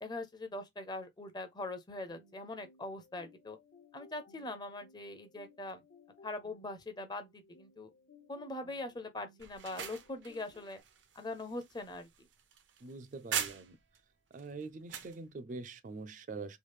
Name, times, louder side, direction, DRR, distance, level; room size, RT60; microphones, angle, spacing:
voice 1, 0.0-3.6 3.9-5.8 6.2-7.9 8.3-10.8 11.1-12.1, left 2 dB, 25° left, 0.6 m, -42 dB
sound 1, 2.1-10.8, left 4 dB, 60° left, 0.7 m, -62 dB
sound 2, 9.4-14.0 14.4-15.2, right 8 dB, 90° right, 0.7 m, -41 dB
voice 2, 12.8-13.8 14.3-16.6, right 3 dB, 45° right, 0.4 m, -44 dB
3.2 x 2.4 x 3.2 m
head